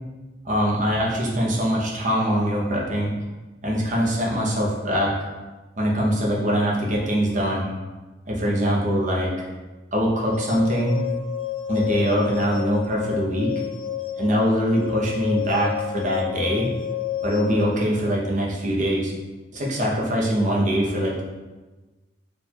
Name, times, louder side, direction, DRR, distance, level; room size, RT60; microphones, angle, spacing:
voice 1, 0.4-3.1 3.6-5.2 5.8-7.7 8.3-9.3 9.9-11.0 11.7-13.5 14.2-16.7 17.2-19.1 19.5-21.2, equal, 45° right, -3 dB, 0.9 m, -23 dB
sound 1, 10.3-17.8, left 11 dB, 35° left, 0.4 m, -30 dB
4.4 x 2.6 x 4.4 m, 1.2 s
head